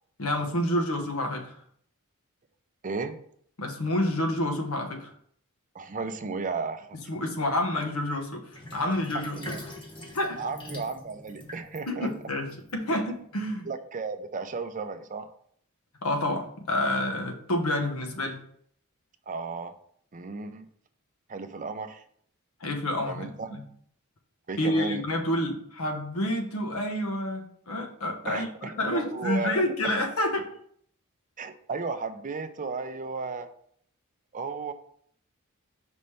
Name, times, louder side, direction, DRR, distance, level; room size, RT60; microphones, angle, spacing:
voice 1, 0.2-1.5 3.6-5.1 7.1-9.3 10.1-10.4 11.9-12.5 12.7-13.7 16.0-18.4 22.6-23.6 24.6-30.4, left 1 dB, 75° left, 4 dB, 1.1 m, -28 dB
voice 2, 2.8-3.2 5.7-7.0 9.4-9.6 10.4-12.3 12.9-13.0 13.7-15.3 19.3-19.7 20.1-20.7 21.3-22.0 23.0-23.5 24.5-25.0 28.2-29.6 31.4-33.5 34.3-34.7, right 4 dB, 35° right, 8 dB, 0.5 m, -34 dB
Sink (filling or washing), 8.5-13.3, left 1 dB, 25° left, 1.2 m, -43 dB
5.2 x 3.3 x 5.5 m, 0.64 s
head